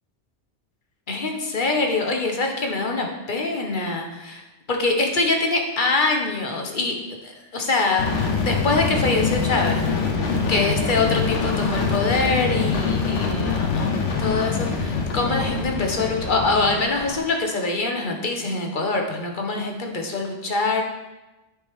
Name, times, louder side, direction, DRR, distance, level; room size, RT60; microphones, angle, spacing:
voice 1, 1.1-20.8, left 3 dB, 45° left, 2 dB, 1.2 m, -24 dB
sound 1, 8.0-17.2, left 4 dB, 90° left, 1.3 m, -24 dB
10.5 x 5.1 x 3.6 m, 1.0 s
omnidirectional pair, 1.2 m